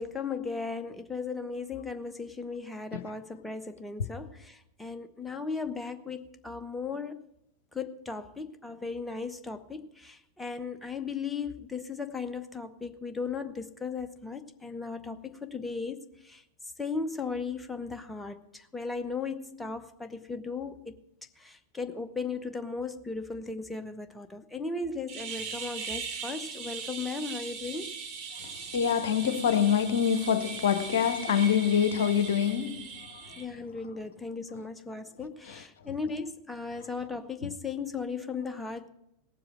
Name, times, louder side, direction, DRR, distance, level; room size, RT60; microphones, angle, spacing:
voice 1, 0.0-7.2 7.7-16.4 16.8-21.0 21.4-27.9 33.4-38.9, left 4 dB, 5° left, 0.9 m, -36 dB
sound 1, 25.1-33.4, right 5 dB, 40° right, 1.8 m, -39 dB
voice 2, 28.4-33.3, left 8 dB, 60° left, 0.9 m, -26 dB
18.0 x 7.7 x 6.1 m
figure-of-eight pair, 90°, 0 cm